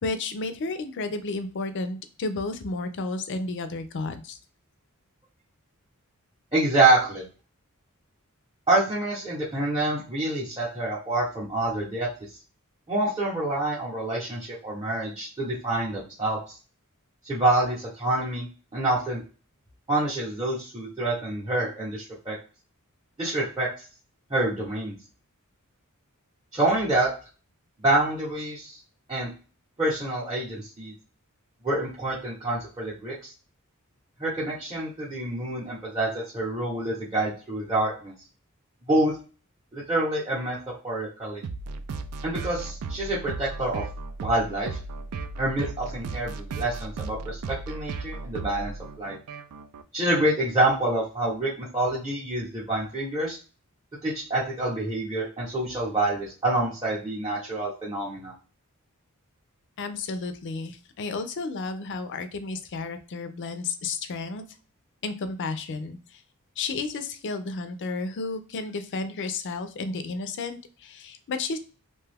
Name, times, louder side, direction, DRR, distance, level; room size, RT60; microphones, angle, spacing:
voice 1, 0.0-4.4 59.8-64.4 65.0-66.2 66.6-71.6, left 3 dB, 55° left, 9 dB, 0.4 m, -32 dB
voice 2, 6.5-7.3 8.7-12.1 12.9-16.5 17.2-18.5 18.7-19.2 19.9-22.4 23.2-23.7 24.3-24.9 26.5-27.1 27.8-28.8 29.1-29.3 29.8-30.9 31.6-33.3 34.2-38.1 38.9-39.1 39.7-40.6 40.8-41.4 42.2-43.8 44.2-44.8 45.4-47.4 47.7-48.7 49.0-49.2 49.9-53.4 54.0-58.3, right 2 dB, 15° right, -7 dB, 0.8 m, -27 dB
sound 1, 41.4-49.8, right 3 dB, 75° right, 0.4 m, -36 dB
2.7 x 2.3 x 3.3 m, 0.35 s
head